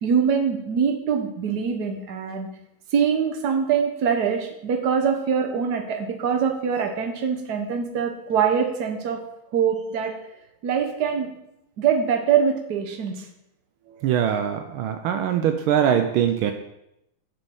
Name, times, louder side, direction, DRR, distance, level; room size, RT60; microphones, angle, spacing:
voice 1, 0.0-2.5 2.9-9.2 9.5-10.1 10.6-11.3 11.8-13.2 14.0-14.3, right 7 dB, 55° right, 5 dB, 1.5 m, -23 dB
voice 2, 14.0-16.5, right 9 dB, 80° right, 7 dB, 1.5 m, -22 dB
6.9 x 6.7 x 6.2 m, 0.84 s
omnidirectional pair, 2.4 m